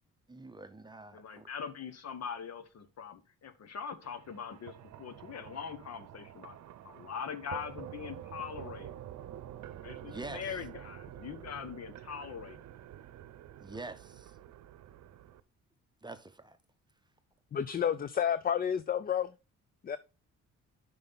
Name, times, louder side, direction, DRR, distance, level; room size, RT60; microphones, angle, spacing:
voice 1, 0.3-1.5 10.1-10.4 13.6-14.4 16.0-16.6, right 3 dB, 15° right, 0.8 m, -45 dB
voice 2, 1.1-6.6 6.8-9.0 9.8-12.6, left 7 dB, 55° left, 1.1 m, -42 dB
sound 1, 4.0-15.4, right 11 dB, 70° right, 0.7 m, -48 dB
voice 3, 17.5-19.3 19.8-20.0, left 8 dB, 30° left, 0.4 m, -30 dB
7.5 x 5.5 x 4.0 m
cardioid pair, 90°, 30 cm